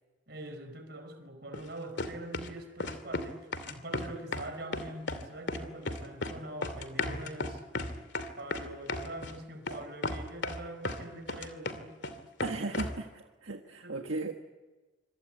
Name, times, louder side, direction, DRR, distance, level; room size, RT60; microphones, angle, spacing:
voice 1, 0.3-7.6 8.4-12.0 13.8-14.0, right 1 dB, 55° right, 7 dB, 5.1 m, -44 dB
sound 1, 1.5-1.7 2.0-2.5 2.8-3.3 3.5-4.5 4.7-5.2 5.5-6.4 6.6-9.3 9.7-9.8 10.0-11.0 11.3-12.1 12.4-13.0, left 2 dB, 60° left, 2.6 m, -34 dB
voice 2, 12.4-14.3, right 3 dB, 80° right, 3 dB, 1.6 m, -36 dB
26.0 x 24.5 x 9.1 m, 1.2 s
head